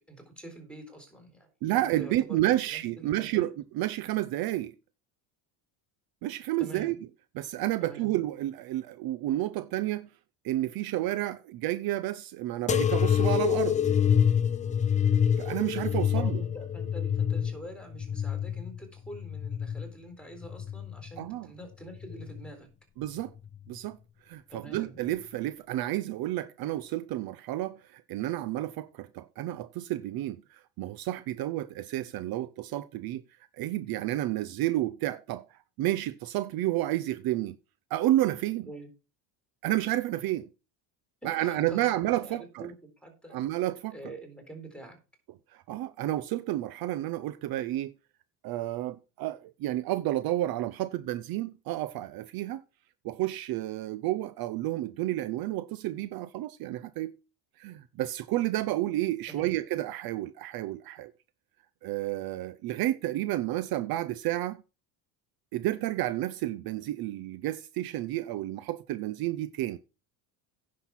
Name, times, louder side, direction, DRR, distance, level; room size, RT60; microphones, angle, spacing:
voice 1, 0.0-2.4 2.7-3.5 6.6-7.0 7.8-8.1 16.1-22.7 24.5-25.0 38.7-38.9 41.2-41.9 42.2-42.8 43.0-43.4 43.9-45.0 59.3-59.6, right 1 dB, ahead, 3.9 m, -45 dB
voice 2, 1.6-4.7 6.2-6.9 7.3-10.1 10.4-13.8 15.4-16.4 21.2-21.5 23.0-23.3 23.7-24.0 24.3-33.2 33.6-37.6 37.9-38.7 39.6-40.5 41.2-42.7 43.3-43.9 45.5-47.9 48.4-52.6 53.0-57.1 57.6-61.1 61.8-64.6 65.5-69.8, right 15 dB, 55° right, 0.7 m, -31 dB
sound 1, 12.7-19.9 20.4-21.2 22.0-22.5 23.5-23.6, left 8 dB, 20° left, 0.4 m, -27 dB
10.0 x 6.4 x 5.9 m
cardioid pair, 125°, 44 cm